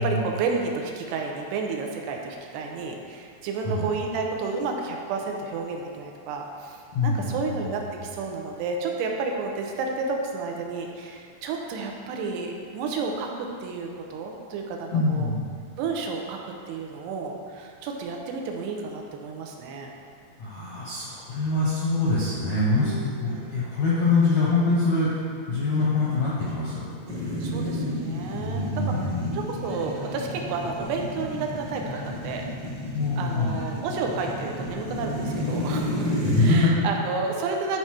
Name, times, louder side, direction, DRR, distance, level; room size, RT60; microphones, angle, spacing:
voice 1, 0.0-15.3 15.8-19.9 22.7-23.6 27.4-32.5 33.2-36.1 36.4-37.8, right 4 dB, 85° right, 1 dB, 2.8 m, -31 dB
voice 2, 6.9-7.7 14.9-15.5 20.4-25.2 25.5-26.9 28.4-29.5 32.9-33.5 36.2-36.7, left 3 dB, 70° left, -8 dB, 1.7 m, -24 dB
sound 1, 27.1-36.5, left 1 dB, 60° right, 1.0 m, -31 dB
10.5 x 4.3 x 4.7 m, 2.2 s
omnidirectional pair, 4.8 m